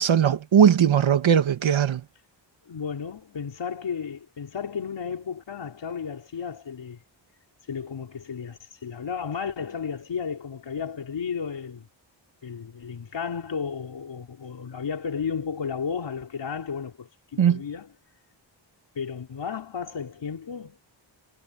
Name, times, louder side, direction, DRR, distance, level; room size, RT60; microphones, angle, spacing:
voice 1, 0.0-2.0 17.4-17.6, right 8 dB, 80° right, 2.0 m, -19 dB
voice 2, 2.7-7.0 7.7-11.9 12.4-17.9 19.0-20.8, left 6 dB, 65° left, 4.1 m, -33 dB
wide cardioid pair, 160°, 46 cm